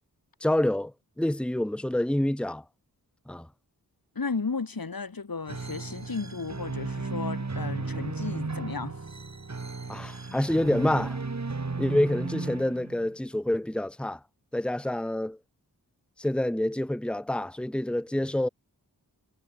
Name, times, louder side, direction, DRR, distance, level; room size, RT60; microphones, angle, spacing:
voice 1, 0.4-2.6 3.3-3.5 9.9-11.2 11.8-14.2 14.5-15.4 16.2-18.5, left 1 dB, 5° left, 1.2 m, -27 dB
voice 2, 4.1-9.0 10.3-10.4, left 4 dB, 65° left, 3.4 m, -34 dB
sound 1, 5.5-13.2, right 3 dB, 45° right, 2.5 m, -35 dB
cardioid pair, 45°, 38 cm